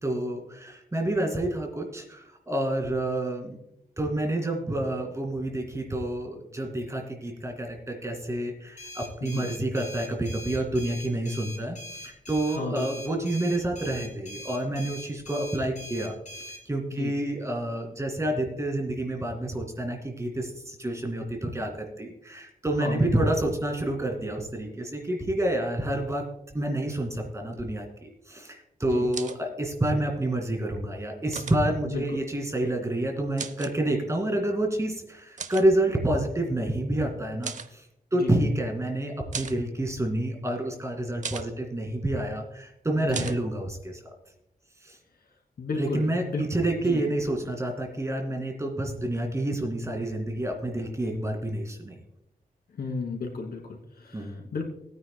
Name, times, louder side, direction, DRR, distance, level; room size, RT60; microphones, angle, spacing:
voice 1, 0.0-3.6 4.0-26.2 26.5-37.8 38.1-44.0 44.8-45.0 45.8-52.0 54.1-54.4, right 1 dB, 20° right, 2 dB, 2.4 m, -28 dB
sound 1, 8.8-16.6, equal, 50° left, 4.2 m, -42 dB
voice 2, 12.5-12.9 16.9-17.1 22.8-23.1 28.9-29.1 31.8-32.2 38.1-38.3 43.0-43.3 45.6-46.5 46.8-47.0 52.8-54.6, left 3 dB, 85° left, 1 dB, 2.9 m, -33 dB
sound 2, 29.1-29.4 31.3-31.6 33.4-33.7 35.4-35.7 37.4-37.7 39.3-39.6 41.2-41.5 43.1-43.4, right 6 dB, 55° right, 0.7 m, -36 dB
19.5 x 9.5 x 2.3 m, 0.83 s
wide cardioid pair, 145°, 15 cm